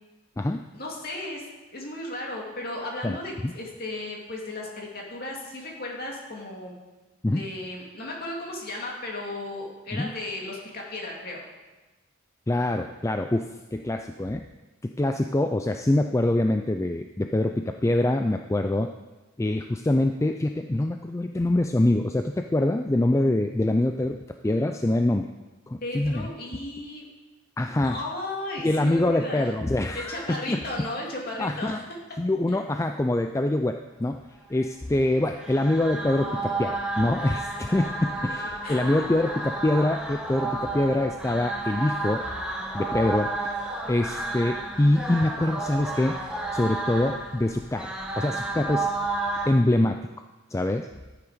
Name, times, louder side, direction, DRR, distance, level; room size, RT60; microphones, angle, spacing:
voice 1, 0.7-1.4 1.7-6.8 7.3-11.4 25.8-27.0 27.8-29.5 29.9-32.0 32.5-32.6 38.3-38.4 38.6-38.8, left 2 dB, 45° left, -1 dB, 2.6 m, -35 dB
voice 2, 12.5-14.4 14.8-18.9 19.4-24.2 24.4-25.3 25.7-26.3 27.6-28.0 28.6-30.9 31.4-31.8 32.2-34.2 34.5-42.2 42.7-43.3 43.8-46.2 46.5-48.9 49.5-50.1 50.5-50.9, left 1 dB, 15° left, 6 dB, 0.3 m, -25 dB
sound 1, 35.2-49.5, right 2 dB, 5° right, 1.4 m, -32 dB
13.5 x 8.8 x 5.0 m, 1.2 s
head